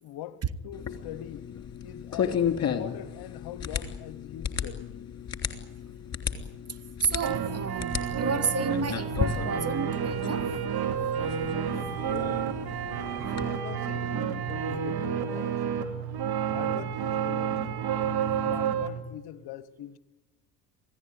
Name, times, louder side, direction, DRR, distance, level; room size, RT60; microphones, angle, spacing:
voice 1, 0.0-1.5 1.8-5.1 12.0-12.5 13.4-15.9 16.5-17.8 18.4-20.0, left 11 dB, 50° left, 1.1 m, -42 dB
sound 1, 0.7-13.5, left 8 dB, 30° left, 3.1 m, -34 dB
voice 2, 7.0-10.5 13.2-13.3, right 4 dB, 30° right, 1.6 m, -31 dB
sound 2, 7.2-19.0, right 8 dB, 50° right, 2.6 m, -30 dB
27.5 x 17.0 x 9.5 m
figure-of-eight pair, 60°, 48 cm